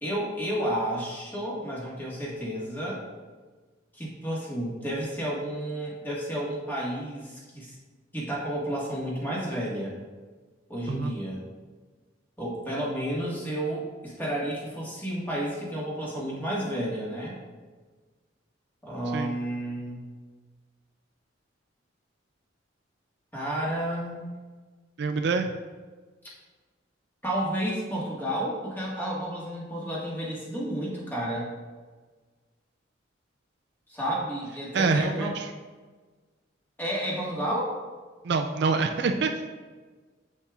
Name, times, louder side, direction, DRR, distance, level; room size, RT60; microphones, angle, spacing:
voice 1, 0.0-3.0 3.9-7.7 8.1-9.9 10.7-11.4 12.4-17.4 18.8-20.1 23.3-24.3 27.2-31.5 33.9-35.3 36.8-37.8, right 1 dB, 10° left, -6 dB, 1.6 m, -31 dB
voice 2, 25.0-25.5 34.7-35.5 38.2-39.5, right 4 dB, 60° right, 5 dB, 0.4 m, -26 dB
7.2 x 6.9 x 2.4 m, 1.4 s
head